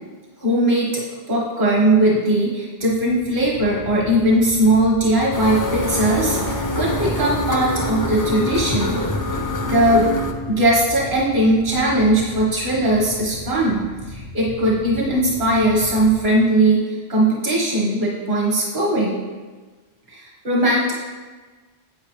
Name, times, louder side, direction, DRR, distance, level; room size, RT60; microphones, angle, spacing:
voice 1, 0.4-1.0 1.3-9.0 9.6-10.1 10.5-19.2 20.1-20.9, right 1 dB, 50° right, -4 dB, 1.6 m, -19 dB
sound 1, 2.8-16.2, left 2 dB, 75° right, 1.6 m, -37 dB
sound 2, 5.3-10.3, left 1 dB, 25° left, 0.5 m, -25 dB
9.6 x 8.2 x 3.2 m, 1.3 s
omnidirectional pair, 1.1 m